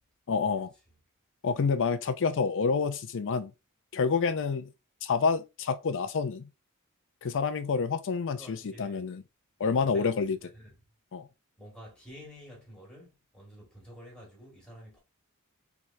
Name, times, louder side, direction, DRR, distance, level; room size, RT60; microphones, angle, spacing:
voice 1, 0.3-0.7 1.4-3.5 3.9-4.7 5.0-6.5 7.2-9.2 9.6-10.4 11.1-11.3, left 5 dB, 60° left, 0.5 m, -28 dB
voice 2, 8.3-9.0 9.9-10.8 11.6-15.0, equal, 5° left, 1.8 m, -50 dB
3.6 x 3.2 x 2.6 m
head